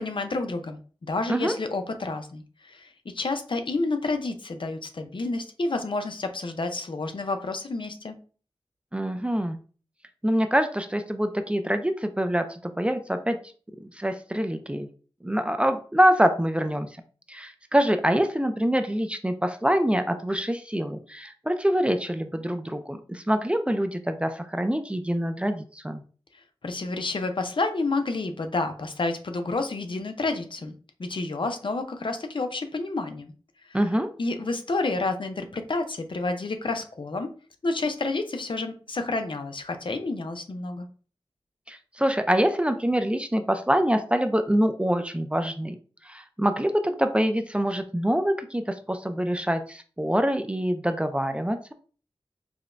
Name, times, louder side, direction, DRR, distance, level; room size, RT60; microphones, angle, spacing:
voice 1, 0.0-8.2 26.3-30.7 31.0-33.3 33.6-33.8 34.2-37.3 37.6-40.9, left 3 dB, 60° left, 7 dB, 0.5 m, -29 dB
voice 2, 8.9-9.6 10.2-13.4 14.0-14.9 15.2-16.9 17.3-26.0 33.7-34.1 41.7-45.8 46.0-51.7, equal, 10° right, 7 dB, 0.4 m, -25 dB
4.9 x 2.1 x 2.5 m, 0.39 s
wide cardioid pair, 55°, 10 cm